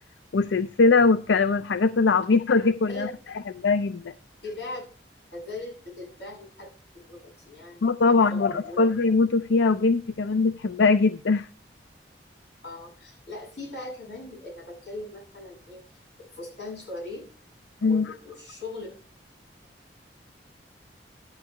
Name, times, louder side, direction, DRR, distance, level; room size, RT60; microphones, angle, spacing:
voice 1, 0.3-3.1 3.6-4.1 7.8-11.5 17.8-18.1, left 4 dB, 90° left, 14 dB, 0.5 m, -21 dB
voice 2, 4.4-4.8 5.3-6.7 6.9-8.9 12.6-15.8 16.2-17.3 17.8-18.9, left 2 dB, 70° left, 1 dB, 6.3 m, -39 dB
13.0 x 9.7 x 3.2 m, 0.36 s
head